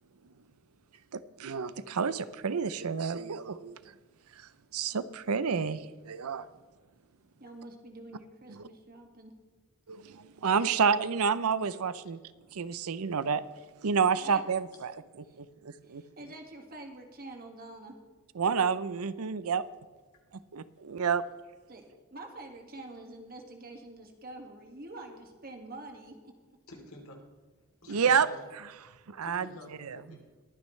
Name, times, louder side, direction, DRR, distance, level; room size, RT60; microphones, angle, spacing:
voice 1, 1.1-3.9 4.7-6.5 9.9-12.2 12.5-13.4 13.8-14.9 15.4-16.0 18.4-19.6 20.5-21.2 27.9-28.3 29.1-29.5, right 6 dB, 80° right, 15 dB, 0.6 m, -29 dB
voice 2, 7.4-9.3 14.1-14.4 15.2-15.4 15.8-18.0 18.4-18.5 21.7-26.3, right 2 dB, 45° right, 3 dB, 1.9 m, -46 dB
voice 3, 26.7-27.2 27.8-28.5 29.2-30.2, left 1 dB, 75° left, 1 dB, 3.1 m, -48 dB
22.0 x 9.6 x 3.2 m, 1.4 s
head